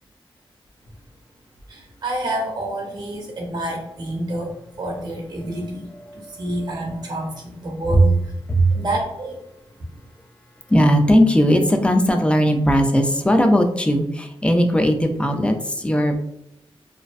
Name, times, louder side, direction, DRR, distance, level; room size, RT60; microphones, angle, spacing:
voice 1, 1.7-8.2 8.7-9.4, right 1 dB, 45° right, 0 dB, 0.6 m, -28 dB
voice 2, 6.0-7.0 7.9-8.0 8.5-8.7 10.7-16.2, equal, 10° left, 5 dB, 0.4 m, -18 dB
2.5 x 2.1 x 2.4 m, 0.81 s
cardioid pair, 80°, 10 cm